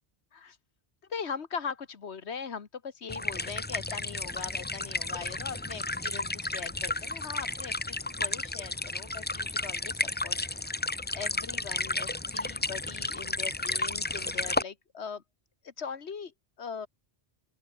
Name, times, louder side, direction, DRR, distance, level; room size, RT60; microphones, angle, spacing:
voice 1, 1.1-10.7 11.1-15.2 15.6-16.9, left 6 dB, 85° left, 1.7 m, -40 dB
sound 1, 3.1-14.6, left 2 dB, 15° left, 0.4 m, -33 dB
open air
omnidirectional pair, 1.1 m